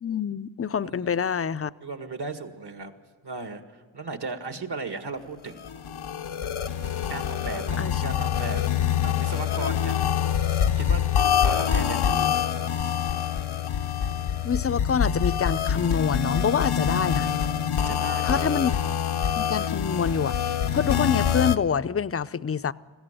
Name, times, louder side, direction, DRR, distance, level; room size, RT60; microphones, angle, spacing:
voice 1, 0.0-1.7 7.8-7.9 12.1-12.3 14.4-17.4 18.2-18.7 19.4-22.7, left 7 dB, 30° left, 0.5 m, -26 dB
voice 2, 0.8-1.1 1.8-3.0 3.2-5.7 7.1-8.7 9.0-10.1 10.8-11.0 11.4-12.1 17.9-18.4, right 3 dB, 55° right, 1.9 m, -36 dB
sound 1, 5.6-21.6, left 8 dB, 85° left, 0.9 m, -25 dB
21.5 x 15.0 x 9.0 m
cardioid pair, 45°, 48 cm